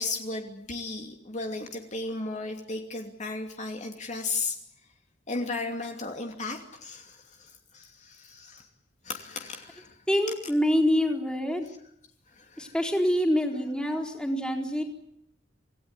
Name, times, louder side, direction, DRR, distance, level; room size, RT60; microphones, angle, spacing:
voice 1, 0.0-4.6 5.3-8.7 9.0-10.0 12.3-12.7, left 3 dB, 40° left, 4 dB, 2.7 m, -35 dB
voice 2, 10.1-11.7 12.6-14.8, equal, 5° left, 1 dB, 4.2 m, -26 dB
27.5 x 17.5 x 9.9 m, 0.76 s
head